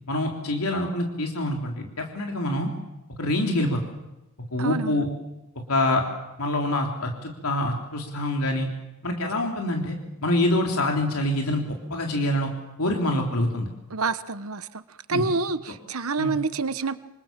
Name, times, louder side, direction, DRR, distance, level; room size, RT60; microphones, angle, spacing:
voice 1, 0.1-2.7 3.2-3.8 4.5-5.1 5.7-6.0 6.4-8.7 9.0-10.0 10.2-12.5 12.8-13.7 15.1-15.2 16.2-16.3, left 1 dB, 85° left, 2 dB, 3.6 m, -25 dB
voice 2, 4.6-5.0 13.9-14.8 15.1-17.0, right 3 dB, 80° right, 12 dB, 1.2 m, -27 dB
27.0 x 27.0 x 7.5 m, 0.96 s
head